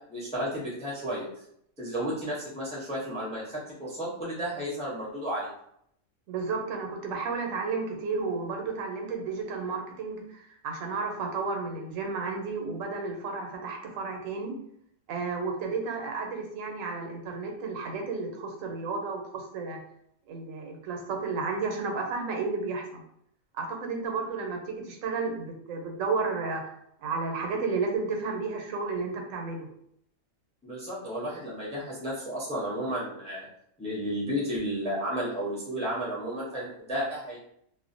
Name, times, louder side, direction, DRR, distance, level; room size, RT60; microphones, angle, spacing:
voice 1, 0.1-1.3 1.8-5.5 30.6-33.5 33.8-37.4, equal, 10° left, -6 dB, 0.4 m, -32 dB
voice 2, 6.3-14.5 15.1-19.8 20.3-23.0 23.5-26.6 27.0-29.7, right 4 dB, 90° right, 2 dB, 1.0 m, -32 dB
2.4 x 2.1 x 2.5 m, 0.71 s
omnidirectional pair, 1.3 m